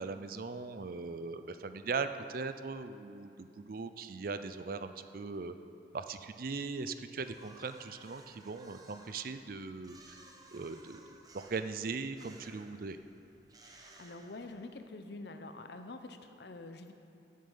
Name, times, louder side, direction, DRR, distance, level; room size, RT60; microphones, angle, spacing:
voice 1, 0.0-5.5 5.9-10.2 10.5-11.0 11.3-13.0, right 4 dB, 50° right, 10 dB, 0.5 m, -39 dB
sound 1, 7.2-14.9, right 2 dB, 20° right, 0.9 m, -58 dB
voice 2, 13.6-16.9, left 2 dB, 60° left, 7 dB, 0.7 m, -47 dB
14.0 x 7.6 x 5.5 m, 2.6 s
head